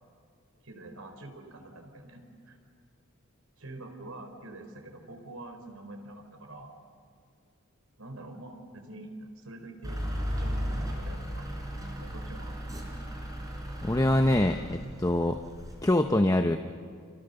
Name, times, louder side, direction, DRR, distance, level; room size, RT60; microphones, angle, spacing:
voice 1, 0.6-2.6 3.6-6.8 8.0-11.6 12.0-12.5, right 2 dB, 85° right, 5 dB, 4.3 m, -45 dB
Truck / Idling, 9.8-15.9, equal, 15° right, 4.9 m, -35 dB
voice 2, 13.8-15.4 15.8-16.6, left 1 dB, 15° left, 6 dB, 0.8 m, -24 dB
30.0 x 28.0 x 6.9 m, 2.1 s
head